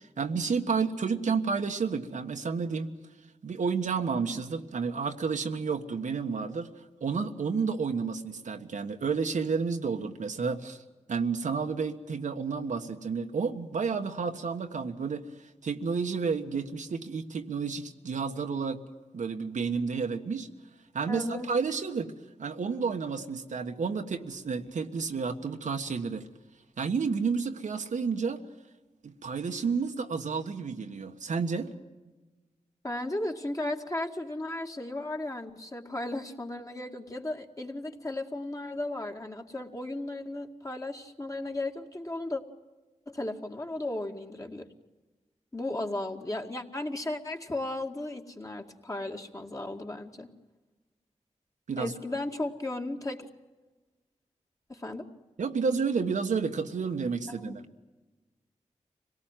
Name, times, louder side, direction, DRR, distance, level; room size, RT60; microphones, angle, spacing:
voice 1, 0.0-2.9 3.4-6.7 7.0-10.8 11.1-15.2 15.6-18.8 19.1-20.5 20.9-22.1 22.4-26.2 26.8-28.4 29.0-31.7 51.7-51.9 55.4-57.6, right 5 dB, 80° right, 5 dB, 1.5 m, -31 dB
voice 2, 21.1-21.5 32.8-42.4 43.1-44.7 45.5-50.3 51.8-53.3 54.7-55.0 57.3-57.5, left 2 dB, 25° left, 3 dB, 2.2 m, -35 dB
25.5 x 18.0 x 9.2 m, 1.2 s
cardioid pair, 65°, 13 cm